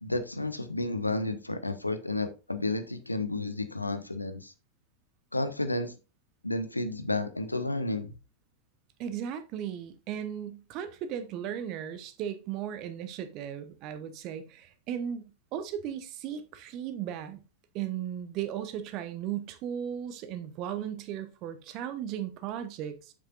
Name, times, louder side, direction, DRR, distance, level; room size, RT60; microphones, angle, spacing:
voice 1, 0.0-4.5 5.3-5.9 6.4-8.1, left 2 dB, 85° left, 0.8 m, -31 dB
voice 2, 9.0-17.4 17.7-23.1, right 9 dB, 40° right, 1.0 m, -36 dB
7.8 x 6.6 x 2.5 m
figure-of-eight pair, 90°, 0 cm